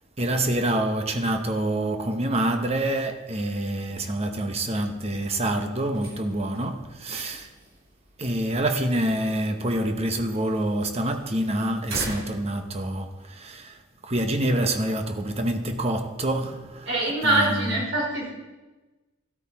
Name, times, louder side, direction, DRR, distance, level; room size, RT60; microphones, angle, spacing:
voice 1, 0.2-7.5 8.2-13.8 14.0-16.9 17.2-17.8, right 1 dB, 30° right, 1.0 m, -26 dB
sound 1, 5.8-13.3, right 1 dB, 90° right, 3.2 m, -43 dB
voice 2, 16.9-18.3, right 1 dB, 75° right, 5.4 m, -24 dB
12.5 x 12.5 x 4.3 m
head